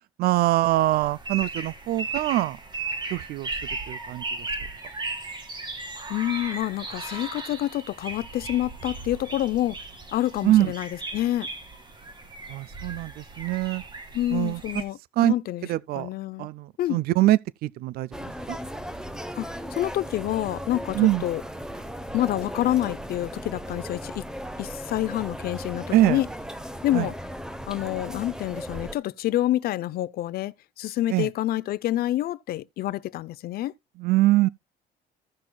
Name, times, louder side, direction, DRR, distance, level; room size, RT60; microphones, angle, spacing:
voice 1, 0.2-2.6 3.1-3.6 3.9-4.5 10.4-10.7 12.5-13.8 14.3-14.8 15.2-15.3 15.6-16.1 16.4-18.6 20.9-21.2 25.9-26.2 26.9-27.1 31.1-31.3 34.0-34.5, right 15 dB, 65° right, 0.4 m, -23 dB
sound 1, 0.7-14.8, right 3 dB, 25° right, 1.9 m, -36 dB
voice 2, 6.1-9.8 10.1-11.5 14.1-15.0 15.2-15.7 16.0-16.5 16.8-17.0 19.4-21.4 22.1-24.2 24.6-26.3 26.8-27.1 27.7-33.7, left 14 dB, 65° left, 0.5 m, -27 dB
sound 2, 18.1-29.0, equal, 5° right, 0.8 m, -37 dB
16.0 x 6.1 x 2.2 m
cardioid pair, 110°, 17 cm